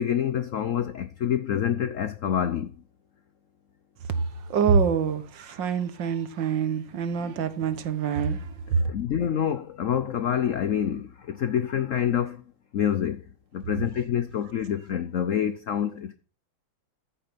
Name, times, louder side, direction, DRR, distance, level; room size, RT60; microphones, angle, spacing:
voice 1, 0.0-2.7 7.2-7.3 8.8-12.4 12.7-13.2 13.5-16.1, left 9 dB, 80° left, 0.7 m, -27 dB
voice 2, 4.5-8.8, right 6 dB, 65° right, 1.8 m, -25 dB
14.5 x 6.8 x 5.8 m
omnidirectional pair, 2.3 m